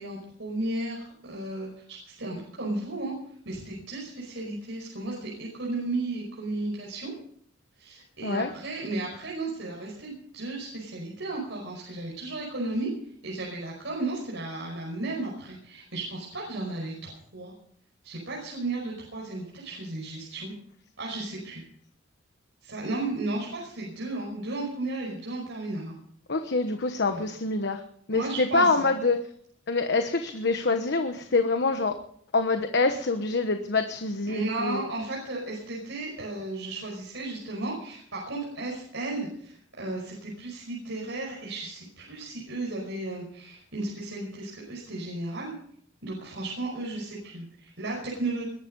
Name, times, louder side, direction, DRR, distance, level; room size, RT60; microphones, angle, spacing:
voice 1, 0.0-3.1 3.4-7.1 7.8-12.9 13.2-17.5 18.0-20.5 21.0-21.6 22.6-25.9 27.1-27.2 28.1-28.9 34.3-45.5 46.0-48.4, right 2 dB, 65° right, -3 dB, 5.5 m, -34 dB
voice 2, 26.3-27.8 28.1-29.2 29.7-32.0 32.3-34.9, left 3 dB, 60° left, 7 dB, 1.2 m, -25 dB
21.5 x 12.0 x 5.4 m, 0.62 s
head